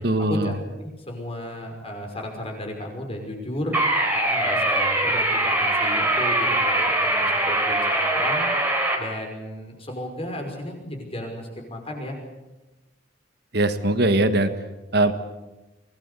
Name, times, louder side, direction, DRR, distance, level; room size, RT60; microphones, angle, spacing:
voice 1, 0.0-0.6 13.5-14.5 14.9-15.1, right 2 dB, 55° right, 10 dB, 1.6 m, -21 dB
voice 2, 0.8-3.8 4.1-8.5 9.0-12.2, left 1 dB, 30° left, 3 dB, 5.7 m, -34 dB
sound 1, 3.7-9.0, right 1 dB, 10° right, 3.7 m, -22 dB
24.5 x 19.0 x 8.4 m, 1.1 s
head